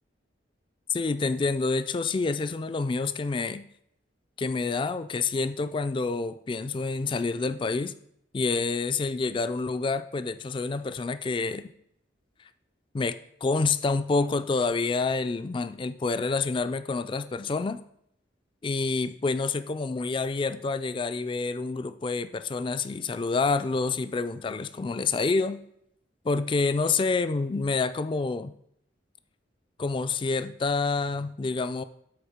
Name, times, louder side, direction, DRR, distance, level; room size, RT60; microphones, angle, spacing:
voice 1, 0.9-3.6 4.4-7.9 8.3-11.7 12.9-17.8 18.6-25.6 26.2-28.5 29.8-31.8, left 4 dB, 25° left, 12 dB, 0.3 m, -28 dB
8.0 x 4.2 x 5.0 m, 0.73 s
head